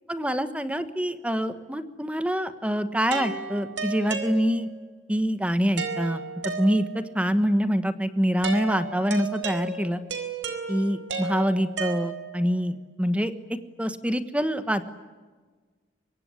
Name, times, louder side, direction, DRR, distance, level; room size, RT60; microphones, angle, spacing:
voice 1, 0.1-4.7 5.1-10.0 10.7-13.3 13.8-14.9, equal, 5° right, 11 dB, 1.3 m, -25 dB
sound 1, 3.1-4.9 5.8-7.2 8.4-12.5, right 4 dB, 90° right, 4.3 m, -33 dB
25.0 x 22.5 x 9.7 m, 1.4 s
head